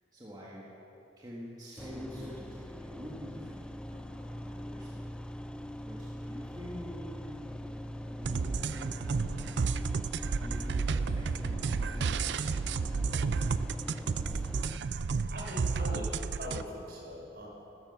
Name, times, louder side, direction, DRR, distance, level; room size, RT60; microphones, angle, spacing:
voice 1, 0.1-0.7 1.2-5.0 5.7-9.4 9.9-12.1, equal, 20° right, -5 dB, 1.8 m, -47 dB
sound 1, 1.8-14.8, equal, 5° left, 0.3 m, -42 dB
sound 2, 8.2-16.6, right 4 dB, 75° right, 0.4 m, -32 dB
voice 2, 13.2-13.5 13.8-14.5 14.9-17.5, equal, 60° right, -2 dB, 4.1 m, -43 dB
13.5 x 13.5 x 6.8 m, 3.0 s
head